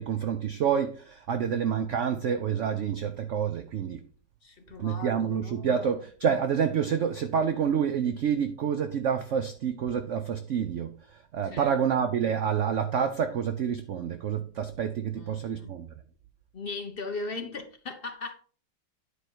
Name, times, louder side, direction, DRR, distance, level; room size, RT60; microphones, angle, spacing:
voice 1, 0.0-4.1 4.8-15.9, right 7 dB, 65° right, 0.7 m, -28 dB
voice 2, 4.4-5.9 11.4-11.8 15.1-15.8 16.5-18.3, left 3 dB, 50° left, 0.6 m, -39 dB
9.8 x 4.6 x 4.5 m
omnidirectional pair, 1.9 m